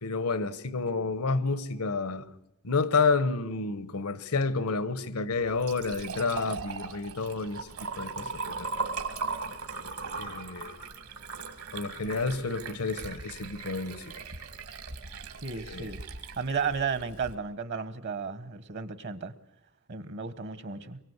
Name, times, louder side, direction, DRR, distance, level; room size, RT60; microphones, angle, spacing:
voice 1, 0.0-2.2 2.6-7.7 8.0-8.3 8.6-8.7 10.2-10.8 11.7-14.1 15.7-15.9, left 4 dB, 80° left, 1.1 m, -30 dB
Liquid, 5.3-17.3, right 4 dB, 75° right, 2.6 m, -39 dB
voice 2, 15.4-16.0 16.4-19.3 19.9-21.0, right 5 dB, 50° right, 1.2 m, -33 dB
24.0 x 23.5 x 8.1 m
head